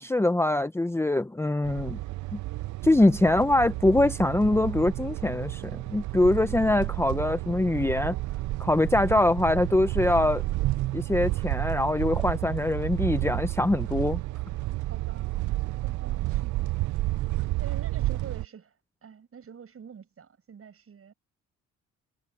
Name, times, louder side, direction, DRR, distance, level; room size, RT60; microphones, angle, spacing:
voice 1, 0.0-2.0 2.3-2.4 2.8-5.6 5.9-8.1 8.6-10.4 10.9-14.2, left 2 dB, 10° left, 0.8 m, -23 dB
sound 1, 1.6-18.5, right 18 dB, 75° right, 0.5 m, -31 dB
voice 2, 14.9-15.3 15.8-16.8 17.6-18.8 19.0-21.1, right 7 dB, 50° right, 7.9 m, -46 dB
cardioid pair, 90°, 30 cm